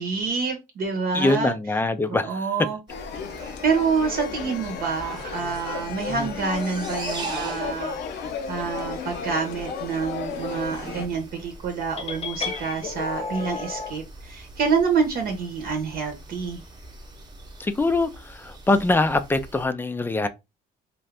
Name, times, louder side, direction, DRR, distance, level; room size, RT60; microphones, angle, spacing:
voice 1, 0.0-1.5 2.1-2.8 3.6-16.6, right 5 dB, 65° right, 0.9 m, -27 dB
voice 2, 1.1-2.4 6.2-6.3 17.6-20.3, left 2 dB, 15° left, 0.3 m, -23 dB
sound 1, 2.9-11.1, left 6 dB, 80° left, 0.5 m, -34 dB
sound 2, 2.9-19.7, right 2 dB, 25° right, 0.8 m, -41 dB
sound 3, 12.0-14.0, left 5 dB, 35° left, 0.7 m, -32 dB
2.7 x 2.4 x 3.3 m
cardioid pair, 110°, 17 cm